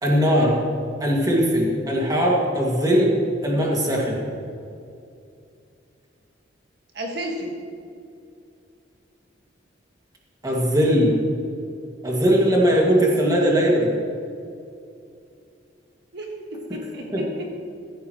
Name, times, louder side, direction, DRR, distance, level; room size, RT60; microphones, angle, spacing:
voice 1, 0.0-0.6 1.0-4.2 10.4-11.2 12.0-13.9 17.1-17.2, equal, 20° right, -2 dB, 2.2 m, -20 dB
voice 2, 6.9-7.6 16.1-17.5, equal, 60° right, 0 dB, 1.8 m, -32 dB
15.5 x 14.5 x 3.1 m, 2.5 s
head